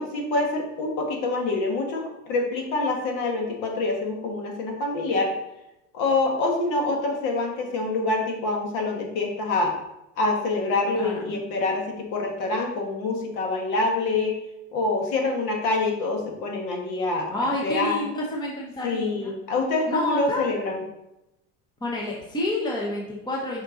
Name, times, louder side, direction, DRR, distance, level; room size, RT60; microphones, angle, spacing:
voice 1, 0.0-5.3 5.9-9.7 10.2-14.3 14.7-18.0 18.8-20.8, left 3 dB, 55° left, 1 dB, 1.7 m, -26 dB
voice 2, 17.3-19.3 19.9-20.5 21.8-23.6, left 1 dB, 10° left, -3 dB, 1.1 m, -29 dB
6.7 x 5.4 x 3.8 m, 0.89 s
cardioid pair, 160°, 36 cm